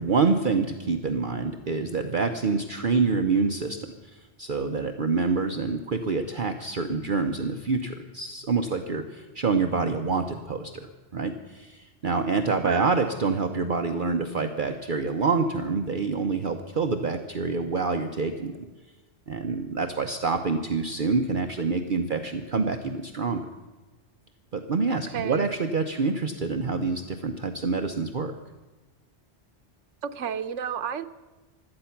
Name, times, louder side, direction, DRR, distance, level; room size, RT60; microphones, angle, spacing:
voice 1, 0.0-3.9 4.1-18.5 19.3-23.4 24.5-28.3, right 4 dB, 50° right, 5 dB, 0.9 m, -27 dB
voice 2, 12.6-12.9 24.9-25.5 30.0-31.1, right 7 dB, 90° right, 11 dB, 1.0 m, -31 dB
16.5 x 12.5 x 5.8 m, 1.2 s
omnidirectional pair, 1.2 m